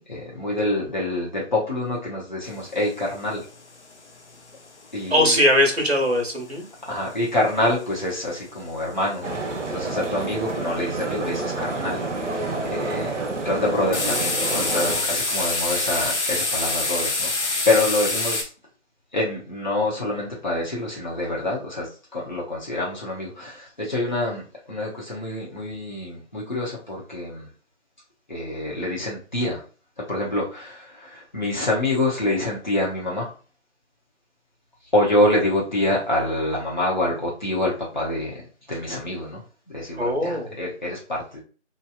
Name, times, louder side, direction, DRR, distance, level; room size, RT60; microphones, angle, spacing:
voice 1, 0.1-3.4 4.9-5.4 6.9-9.4 9.7-18.5 19.1-24.4 24.7-27.5 28.3-29.6 30.1-33.3 34.9-38.4 38.7-39.4 39.7-41.4, left 1 dB, 40° left, -5 dB, 0.9 m, -26 dB
sound 1, 2.6-2.7 3.1-3.2 3.4-3.7 4.1-4.9 5.2-6.4 6.8-8.2 8.6-8.8 9.1-9.2 9.5-9.9 10.3-10.7 11.2-11.6 12.1-12.6 13.0-13.3 13.9-18.4, left 3 dB, 70° left, 0.7 m, -26 dB
voice 2, 5.1-6.6 40.0-40.5, left 1 dB, 60° right, 2 dB, 1.0 m, -20 dB
sound 2, 9.2-15.0, right 3 dB, 85° right, 0.7 m, -29 dB
2.9 x 2.2 x 2.3 m, 0.36 s
figure-of-eight pair, 180°, 36 cm